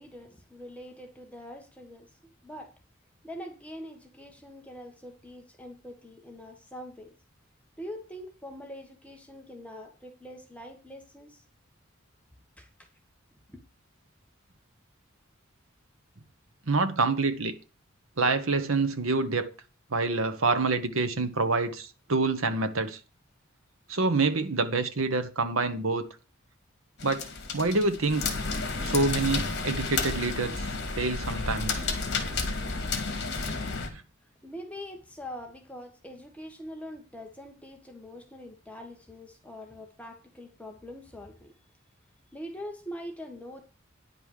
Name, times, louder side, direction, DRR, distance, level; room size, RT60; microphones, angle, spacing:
voice 1, 0.0-2.1 2.4-2.7 3.2-7.1 7.8-11.4 12.6-12.7 13.5-13.6 34.4-41.5 42.3-43.6, equal, 5° left, 1.4 m, -43 dB
voice 2, 16.7-17.5 18.2-19.5 19.9-23.0 23.9-26.1 27.0-27.2 27.5-28.3 28.8-30.7 31.0-31.9 33.9-34.0, right 3 dB, 80° right, 1.3 m, -27 dB
sound 1, 27.0-33.9, left 4 dB, 55° left, 2.3 m, -31 dB
10.0 x 5.5 x 6.4 m
head